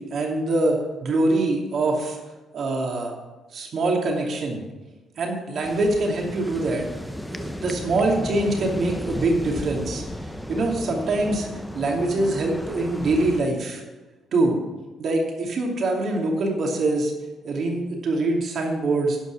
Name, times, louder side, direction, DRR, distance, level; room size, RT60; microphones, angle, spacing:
voice 1, 0.1-2.2 2.5-3.1 3.5-4.6 5.2-6.8 7.2-10.0 10.5-11.5 11.7-13.8 14.3-14.6 15.0-17.1 17.4-19.2, right 2 dB, 60° right, 0 dB, 2.6 m, -24 dB
sound 1, 5.6-13.4, left 1 dB, 5° left, 0.9 m, -34 dB
11.5 x 5.7 x 8.4 m, 1.2 s
cardioid pair, 90°, 0 cm